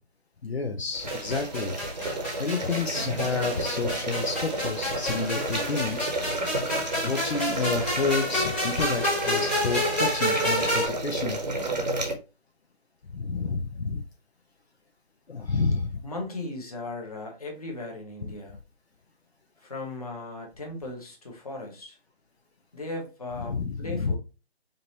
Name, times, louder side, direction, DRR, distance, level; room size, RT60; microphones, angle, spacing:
voice 1, 0.4-1.8 2.4-6.1 7.0-11.4 13.1-14.0 15.3-16.0 23.5-24.2, left 4 dB, 75° left, 2 dB, 0.9 m, -29 dB
sound 1, 0.9-12.1, right 2 dB, 40° right, 1.0 m, -32 dB
sound 2, 1.1-10.9, left 1 dB, 5° left, 1.1 m, -29 dB
voice 2, 16.0-18.6 19.6-22.0 22.7-24.2, left 2 dB, 35° left, 1 dB, 1.3 m, -37 dB
5.1 x 2.8 x 2.9 m, 0.31 s
figure-of-eight pair, 165°, 32 cm